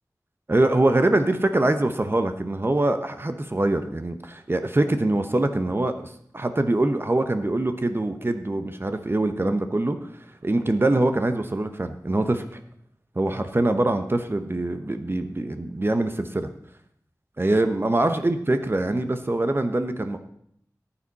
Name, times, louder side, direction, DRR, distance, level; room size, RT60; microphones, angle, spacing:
voice 1, 0.5-10.0 10.4-12.6 13.2-16.5 17.4-20.2, right 2 dB, 35° right, 8 dB, 1.0 m, -24 dB
14.0 x 8.9 x 4.2 m, 0.68 s
wide cardioid pair, 65°, 6 cm